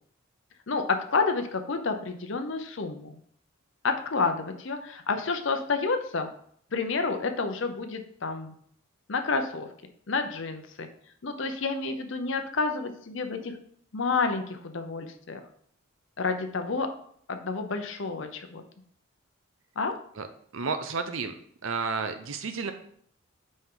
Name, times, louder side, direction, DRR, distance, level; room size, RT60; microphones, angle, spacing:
voice 1, 0.7-3.1 3.8-6.3 6.7-8.5 9.1-9.7 10.1-10.9 11.2-13.5 13.9-15.4 16.2-16.9 17.3-18.6 19.8-19.9, left 4 dB, 60° left, 6 dB, 0.7 m, -29 dB
voice 2, 20.5-21.3 21.6-22.7, right 4 dB, 70° right, 8 dB, 0.6 m, -31 dB
8.6 x 5.4 x 3.8 m, 0.63 s
head